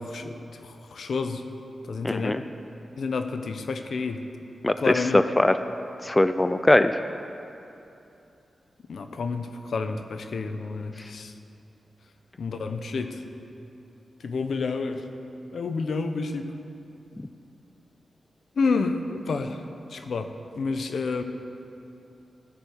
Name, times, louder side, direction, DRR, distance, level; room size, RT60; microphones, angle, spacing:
voice 1, 0.0-1.4 1.8-2.4 3.0-4.2 4.8-5.2 8.9-11.3 12.4-13.2 14.2-15.0 15.5-16.5 18.6-21.2, left 4 dB, 75° left, 7 dB, 0.8 m, -29 dB
voice 2, 2.0-2.4 4.6-5.6 6.0-7.0, left 1 dB, 20° left, 10 dB, 0.6 m, -21 dB
16.5 x 6.6 x 8.0 m, 2.8 s
cardioid pair, 50°, 0 cm